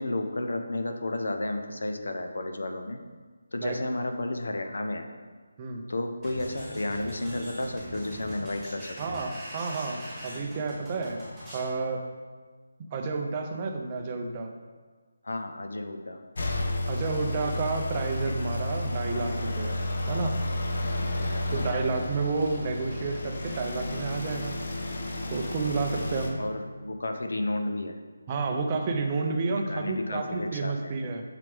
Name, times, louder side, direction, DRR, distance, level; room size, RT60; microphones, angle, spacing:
voice 1, 0.0-3.0 3.5-5.1 5.9-9.2 15.2-16.2 18.3-18.5 21.0-21.9 26.4-28.0 29.7-31.0, left 2 dB, 75° left, 5 dB, 0.9 m, -32 dB
sound 1, 6.2-11.7, equal, ahead, 1.7 m, -42 dB
voice 2, 9.0-11.3 11.5-12.0 12.9-14.5 16.9-19.7 20.1-20.4 21.5-24.6 25.3-26.4 28.3-31.2, right 4 dB, 15° right, 3 dB, 0.5 m, -30 dB
sound 2, 16.3-26.3, left 1 dB, 45° left, 0.9 m, -32 dB
6.9 x 6.6 x 3.5 m, 1.4 s
figure-of-eight pair, 175°, 0 cm